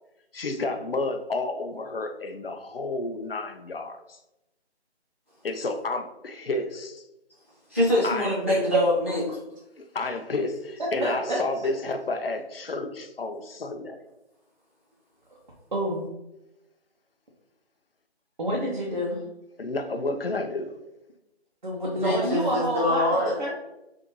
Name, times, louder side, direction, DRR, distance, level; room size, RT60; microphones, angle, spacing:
voice 1, 0.3-4.2 5.4-7.0 8.0-8.3 9.8-14.0 19.6-20.8, left 2 dB, 60° left, 7 dB, 0.6 m, -31 dB
voice 2, 7.7-9.4 22.0-23.4, left 1 dB, 10° right, -12 dB, 0.9 m, -24 dB
voice 3, 11.0-11.4 15.7-16.0 18.4-19.2 21.6-23.5, right 1 dB, 40° right, -4 dB, 0.8 m, -28 dB
6.2 x 2.7 x 3.0 m, 0.91 s
hypercardioid pair, 175°, 33 cm